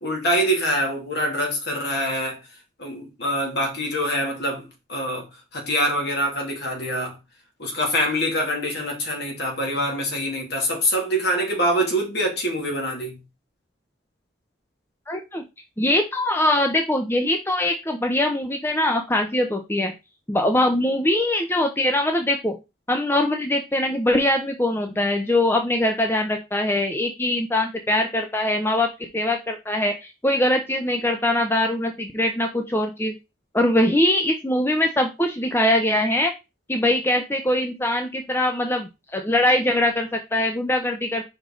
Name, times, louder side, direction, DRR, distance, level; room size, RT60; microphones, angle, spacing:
voice 1, 0.0-2.4 2.8-7.2 7.6-13.2, equal, 55° left, 2.3 m, -25 dB
voice 2, 15.1-15.4 15.8-19.9 20.3-22.5 22.9-33.2 33.5-36.3 36.7-41.2, left 1 dB, 10° left, 0.6 m, -22 dB
5.3 x 5.0 x 3.7 m
head